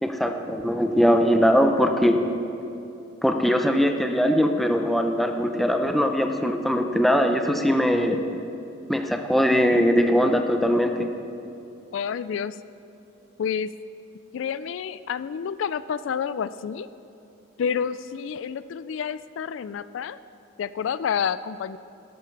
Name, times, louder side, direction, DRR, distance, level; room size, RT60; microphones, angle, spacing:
voice 1, 0.0-2.2 3.2-8.2 8.9-10.9, equal, ahead, 4 dB, 0.7 m, -21 dB
voice 2, 11.9-12.5 13.4-13.7 14.3-16.9 17.6-20.2 20.6-21.8, left 7 dB, 75° left, 15 dB, 0.3 m, -29 dB
12.0 x 11.5 x 4.7 m, 2.9 s
head